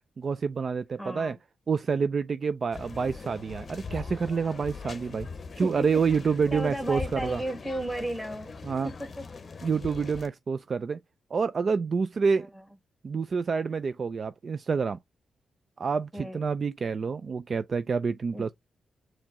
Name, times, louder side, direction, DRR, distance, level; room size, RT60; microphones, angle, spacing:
voice 1, 0.2-1.4 1.7-5.3 5.6-7.4 8.6-8.9 9.6-11.0 11.3-12.5 13.0-15.0 15.8-18.5, right 5 dB, 40° right, 0.3 m, -28 dB
voice 2, 1.0-1.4 5.6-6.0 6.5-8.6 8.8-9.3 12.4-12.5 16.1-16.4 18.3-18.5, right 1 dB, 5° right, 2.1 m, -34 dB
sound 1, 2.7-10.3, left 4 dB, 35° left, 0.8 m, -41 dB
4.5 x 3.0 x 3.6 m
wide cardioid pair, 135°, 0 cm